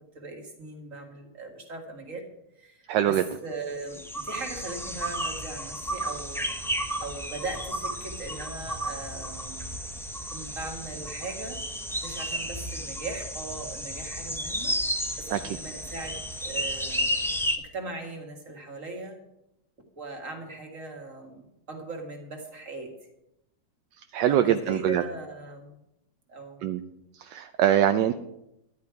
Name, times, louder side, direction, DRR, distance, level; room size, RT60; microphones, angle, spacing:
voice 1, 0.1-2.2 2.6-6.6 7.0-9.7 10.3-11.6 12.0-14.8 15.2-17.2 17.6-19.2 20.0-22.9 24.3-25.8 26.3-26.7, right 3 dB, 45° right, 2 dB, 2.3 m, -39 dB
voice 2, 2.9-3.2 15.3-15.6 24.1-25.0 26.6-26.8 27.2-28.1, right 10 dB, 75° right, 8 dB, 1.2 m, -23 dB
sound 1, 3.7-17.6, equal, 5° left, 0.3 m, -33 dB
12.0 x 10.5 x 4.7 m, 0.85 s
omnidirectional pair, 1.9 m